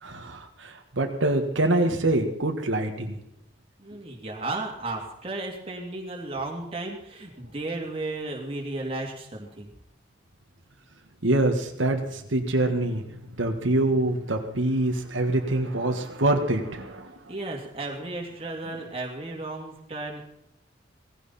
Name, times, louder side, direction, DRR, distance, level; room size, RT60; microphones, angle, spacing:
voice 1, 0.0-3.2 11.2-13.0 13.4-17.2, right 2 dB, 90° right, 4 dB, 1.7 m, -25 dB
voice 2, 3.8-9.7 17.3-20.2, right 2 dB, 30° right, 0 dB, 2.8 m, -34 dB
18.0 x 15.5 x 4.3 m, 0.76 s
head